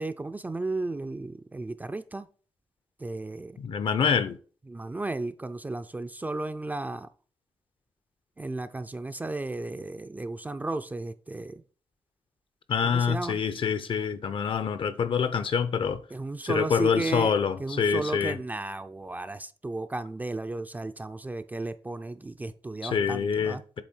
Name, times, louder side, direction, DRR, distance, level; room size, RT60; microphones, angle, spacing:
voice 1, 0.0-2.3 3.0-3.6 4.7-7.1 8.4-11.6 12.8-13.4 16.1-17.3 17.6-23.6, right 2 dB, 15° right, 0.3 m, -34 dB
voice 2, 3.6-4.4 12.7-16.0 16.4-18.4 22.8-23.8, left 6 dB, 60° left, 0.6 m, -26 dB
8.1 x 3.4 x 4.3 m
wide cardioid pair, 125°, 10 cm